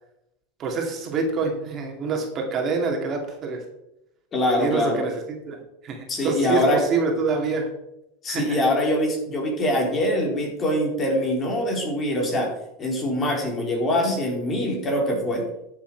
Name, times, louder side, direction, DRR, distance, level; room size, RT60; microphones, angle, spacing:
voice 1, 0.6-3.6 4.6-5.2 5.5-7.7 8.3-8.6, right 4 dB, 35° right, 2 dB, 2.4 m, -26 dB
voice 2, 4.3-5.0 6.1-6.8 8.2-12.5 12.8-15.5, left 1 dB, 30° left, 0 dB, 3.9 m, -23 dB
11.5 x 7.4 x 4.6 m, 0.85 s
supercardioid pair, 120°, 0 cm